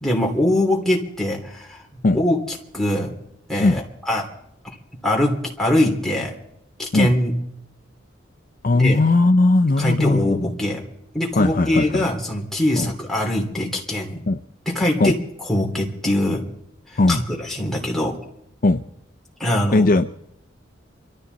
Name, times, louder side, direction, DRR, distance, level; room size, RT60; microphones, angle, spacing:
voice 1, 0.0-1.8 2.1-3.1 3.5-4.3 5.0-6.3 6.8-7.4 8.7-9.0 9.8-10.8 11.1-14.2 14.7-15.2 15.5-16.4 16.9-18.2 19.4-19.9, left 1 dB, ahead, -2 dB, 2.9 m, -22 dB
voice 2, 8.6-10.4 11.4-12.0 12.8-12.9 14.3-14.4 15.0-15.1 17.0-17.2 18.6-18.8 19.7-20.1, left 2 dB, 45° left, 8 dB, 0.5 m, -18 dB
25.5 x 13.0 x 4.0 m, 0.77 s
head